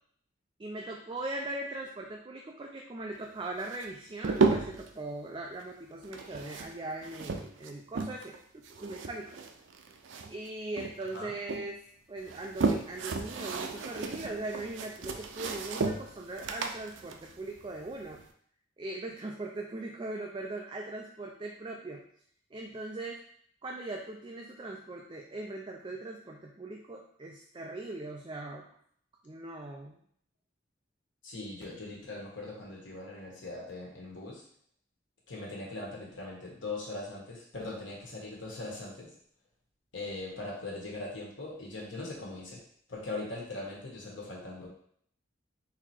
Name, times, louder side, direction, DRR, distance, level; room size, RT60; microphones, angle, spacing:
voice 1, 0.6-9.3 10.3-11.8 12.1-18.2 18.8-22.0 22.5-23.2 23.6-28.7 29.2-30.0, right 2 dB, 25° right, 0 dB, 0.4 m, -40 dB
sound 1, 3.6-4.9 6.0-8.4 8.6-10.5 10.8-11.6 12.2-18.2, right 4 dB, 90° right, 0.5 m, -33 dB
voice 2, 31.2-34.4 35.3-39.1 39.9-42.6 42.9-44.7, left 2 dB, 90° left, -3 dB, 1.5 m, -40 dB
4.0 x 3.0 x 4.3 m, 0.63 s
head